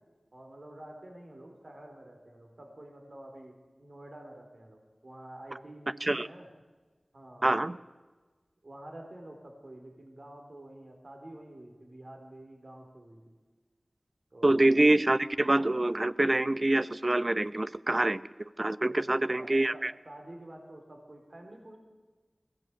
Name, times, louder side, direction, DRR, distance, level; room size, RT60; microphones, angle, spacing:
voice 1, 0.3-3.5 3.8-6.5 7.1-7.8 8.6-13.3 14.3-14.6 18.8-21.8, right 1 dB, 55° right, 1 dB, 4.2 m, -49 dB
voice 2, 7.4-7.8 14.4-18.2 18.6-19.9, right 2 dB, 40° right, 15 dB, 0.7 m, -25 dB
21.5 x 16.5 x 8.4 m, 1.3 s
wide cardioid pair, 55°, 0 cm